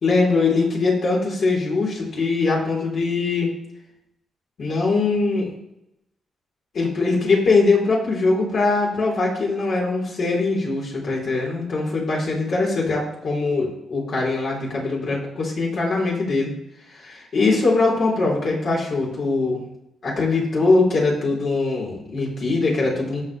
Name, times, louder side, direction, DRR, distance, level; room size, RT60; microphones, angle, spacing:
voice 1, 0.0-3.5 4.6-5.5 6.7-16.5 16.9-19.6 20.0-23.2, left 3 dB, 65° left, -4 dB, 3.6 m, -22 dB
15.0 x 5.5 x 3.3 m, 0.83 s
cardioid pair, 70°, 0 cm